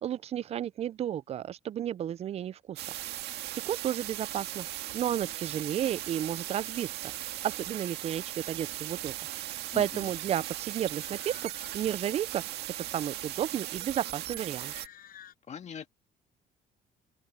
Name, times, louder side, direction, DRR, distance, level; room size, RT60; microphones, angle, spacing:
voice 1, 0.0-2.9 3.6-4.7 4.9-6.9 7.4-12.4 12.8-14.7, right 10 dB, 40° right, 0.4 m, -32 dB
sound 1, 2.8-14.9, right 14 dB, 80° right, 1.7 m, -38 dB
sound 2, 9.5-15.3, left 10 dB, 60° left, 7.0 m, -56 dB
voice 2, 9.7-10.1 15.5-15.9, left 7 dB, 40° left, 1.9 m, -41 dB
cardioid pair, 110°, 17 cm